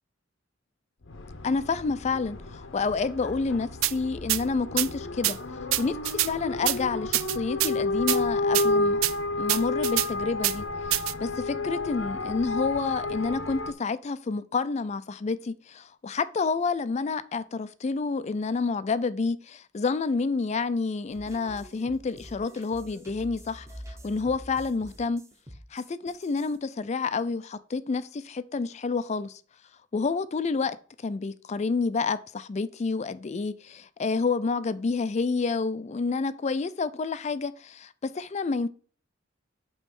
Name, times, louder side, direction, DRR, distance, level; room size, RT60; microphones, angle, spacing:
sound 1, 1.0-13.7, left 2 dB, 75° left, 0.8 m, -31 dB
voice 1, 1.4-5.4 5.8-9.0 9.4-10.6 11.2-25.2 25.7-28.0 28.3-29.3 29.9-30.8 31.0-38.7, left 4 dB, 35° left, 0.4 m, -29 dB
sound 2, 3.8-3.9 4.3-4.4 4.8-4.9 5.2-5.3 5.7-6.3 6.7-6.8 7.1-7.7 8.1-8.2 8.5-8.7 9.0-9.1 9.5-10.1 10.4-10.5 10.9-11.1, right 16 dB, 90° right, 0.3 m, -25 dB
sound 3, 21.1-26.6, equal, 15° right, 0.9 m, -46 dB
8.4 x 3.1 x 5.3 m
head